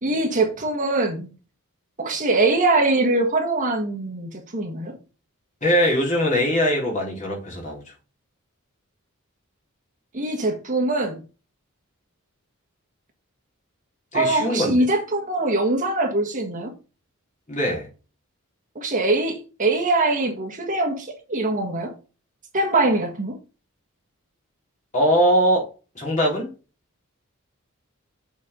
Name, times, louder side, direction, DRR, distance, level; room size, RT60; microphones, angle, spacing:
voice 1, 0.0-1.3 2.0-5.0 10.1-11.2 14.1-16.7 18.7-21.9 22.5-23.4, right 2 dB, 35° right, 1.6 m, -22 dB
voice 2, 5.6-7.8 14.1-14.8 17.5-17.9 24.9-25.7 25.9-26.5, equal, 35° left, 4.1 m, -21 dB
7.2 x 4.7 x 5.4 m
head